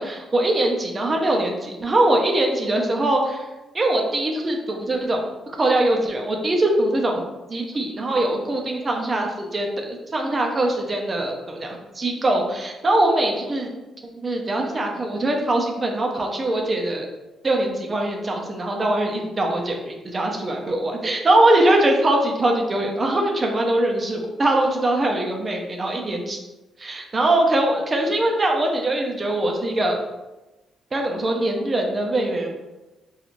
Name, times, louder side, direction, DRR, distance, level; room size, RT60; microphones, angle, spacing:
voice 1, 0.0-3.4 3.7-5.3 5.6-7.2 7.5-13.7 14.2-17.1 17.4-26.4 26.8-30.0 30.9-32.5, right 1 dB, 30° right, 1 dB, 0.5 m, -22 dB
3.0 x 2.3 x 2.5 m, 1.1 s
cardioid pair, 110°, 0 cm